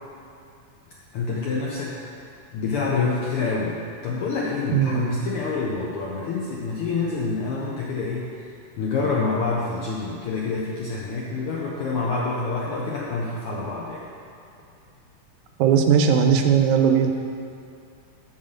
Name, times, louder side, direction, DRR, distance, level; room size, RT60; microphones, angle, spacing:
voice 1, 1.1-1.9 2.5-3.7 4.0-8.5 8.8-14.0, left 4 dB, 80° left, -4 dB, 1.2 m, -27 dB
voice 2, 4.7-5.1 15.6-17.1, right 7 dB, 90° right, 4 dB, 2.0 m, -18 dB
7.4 x 4.1 x 6.4 m, 2.4 s
omnidirectional pair, 3.3 m